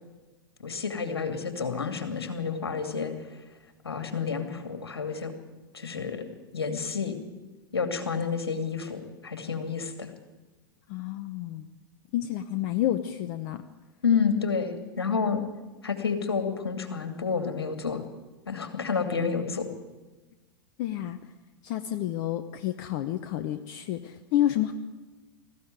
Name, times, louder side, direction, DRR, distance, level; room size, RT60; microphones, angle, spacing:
voice 1, 0.6-3.1 3.8-5.3 5.7-6.3 6.5-7.2 7.7-10.1 14.0-15.4 15.8-18.0 18.5-19.7, left 6 dB, 75° left, 7 dB, 2.5 m, -29 dB
voice 2, 10.9-11.7 12.1-13.6 20.8-21.2 21.6-24.7, left 12 dB, 45° left, 9 dB, 0.9 m, -29 dB
19.5 x 14.5 x 9.3 m, 1.2 s
figure-of-eight pair, 95°, 13 cm